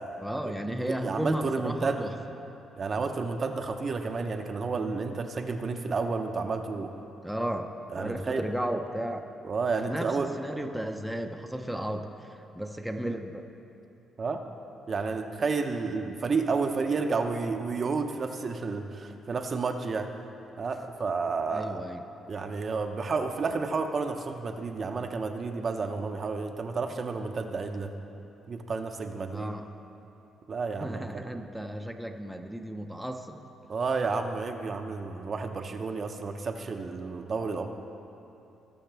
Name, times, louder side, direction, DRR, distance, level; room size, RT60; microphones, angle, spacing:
voice 1, 0.2-2.1 7.2-9.3 9.9-13.4 21.5-22.0 29.3-29.7 30.8-33.4, right 1 dB, ahead, 3 dB, 0.6 m, -34 dB
voice 2, 0.9-2.0 2.8-6.9 7.9-8.4 9.4-10.3 14.2-14.4 14.9-20.1 20.6-21.8 22.3-27.9 28.5-29.5 30.5-31.2 33.7-37.7, right 4 dB, 45° right, 5 dB, 0.7 m, -31 dB
19.0 x 6.5 x 3.4 m, 2.8 s
cardioid pair, 90°, 0 cm